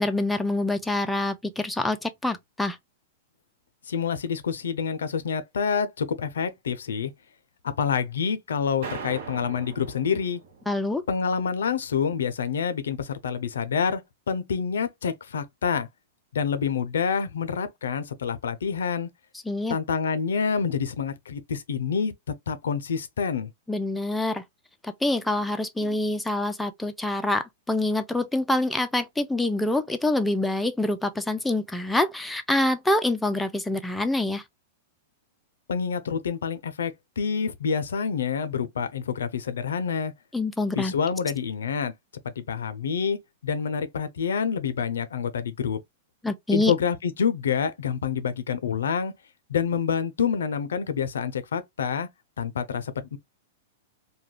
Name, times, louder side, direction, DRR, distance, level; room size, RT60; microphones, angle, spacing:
voice 1, 0.0-2.8 10.7-11.0 19.5-19.8 23.7-24.4 24.8-34.4 40.3-40.9 46.2-46.7, left 2 dB, 5° left, 0.3 m, -26 dB
voice 2, 3.9-7.1 7.6-10.4 11.1-15.9 16.3-19.1 19.7-22.1 22.5-23.5 35.7-40.1 40.8-41.9 42.4-43.2 43.4-45.8 46.5-49.1 49.5-52.1 52.4-53.2, left 6 dB, 90° left, 0.4 m, -27 dB
sound 1, 8.8-11.2, right 5 dB, 65° right, 0.9 m, -40 dB
2.3 x 2.2 x 3.1 m
hypercardioid pair, 130°, 0 cm